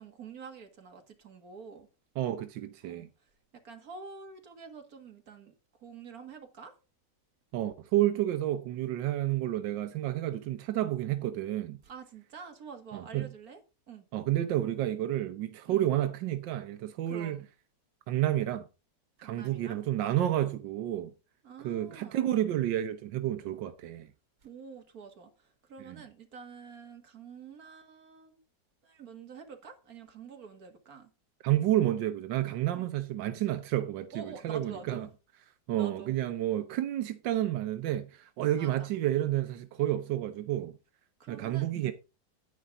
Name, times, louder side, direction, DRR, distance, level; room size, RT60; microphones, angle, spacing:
voice 1, 0.0-1.9 2.8-3.3 3.6-6.8 11.8-13.6 13.9-14.1 15.7-15.9 17.1-17.5 19.2-19.9 21.4-22.3 24.4-28.4 28.8-31.1 32.7-32.9 34.1-35.1 35.7-36.1 38.5-38.9 41.2-41.8, right 5 dB, 55° right, 2.3 m, -47 dB
voice 2, 2.2-3.1 7.5-11.8 12.9-13.3 14.1-17.4 18.1-18.7 19.2-21.1 21.6-24.1 25.8-26.0 31.4-35.1 35.7-40.8 41.3-41.9, right 13 dB, 90° right, 1.5 m, -30 dB
10.0 x 9.6 x 3.7 m
omnidirectional pair, 1.9 m